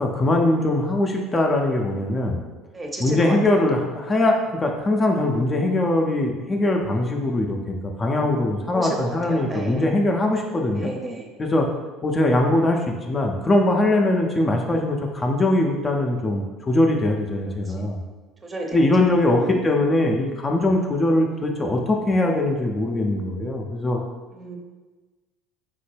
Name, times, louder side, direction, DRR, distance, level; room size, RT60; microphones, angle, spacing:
voice 1, 0.0-2.4 3.0-10.9 11.4-11.7 12.0-18.0 18.7-24.0, left 2 dB, 25° left, 1 dB, 0.4 m, -21 dB
voice 2, 2.7-3.6 8.7-9.9 10.7-11.2 12.1-12.4 17.8-17.9 18.4-18.9 19.4-19.6 21.3-22.0 24.3-24.6, right 2 dB, 20° right, 1 dB, 0.6 m, -33 dB
3.7 x 2.1 x 3.2 m, 1.3 s
hypercardioid pair, 70°, 0 cm